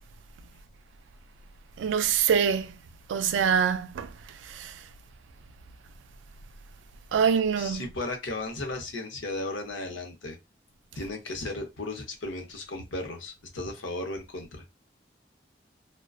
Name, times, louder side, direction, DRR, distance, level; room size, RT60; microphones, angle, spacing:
voice 1, 1.8-2.8 3.1-4.1 4.5-4.7 7.1-7.8, right 7 dB, 85° right, 0.3 m, -24 dB
voice 2, 7.6-10.4 10.9-14.6, left 2 dB, 90° left, 0.8 m, -35 dB
2.5 x 2.1 x 2.3 m
head